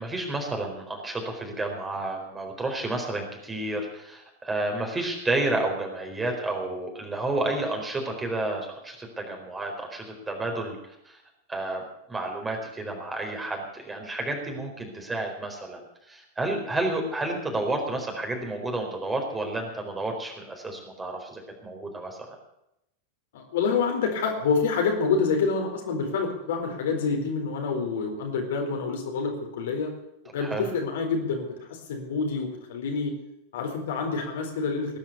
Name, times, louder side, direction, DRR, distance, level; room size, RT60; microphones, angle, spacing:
voice 1, 0.0-10.8 11.0-11.2 11.5-15.8 16.1-22.3 30.4-30.7, right 2 dB, 15° right, 2 dB, 4.4 m, -31 dB
voice 2, 23.3-29.9 30.3-33.1 33.5-35.0, left 5 dB, 55° left, 2 dB, 4.2 m, -27 dB
19.5 x 10.5 x 6.9 m, 0.84 s
figure-of-eight pair, 90°, 0 cm